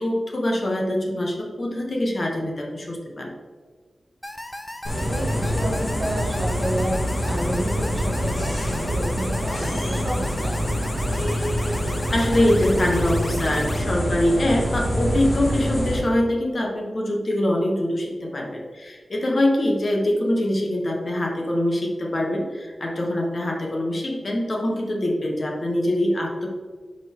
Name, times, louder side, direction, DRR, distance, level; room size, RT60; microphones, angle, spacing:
voice 1, 0.0-3.3 12.1-26.5, left 1 dB, 50° left, 0 dB, 1.2 m, -24 dB
sound 1, 4.2-13.8, left 1 dB, 20° left, 0.5 m, -37 dB
sound 2, 4.9-16.0, equal, 65° left, 1.9 m, -25 dB
voice 2, 5.1-7.0 7.3-10.7, right 1 dB, 55° right, -2 dB, 1.7 m, -30 dB
5.9 x 5.2 x 3.6 m, 1.5 s
wide cardioid pair, 90°, 0 cm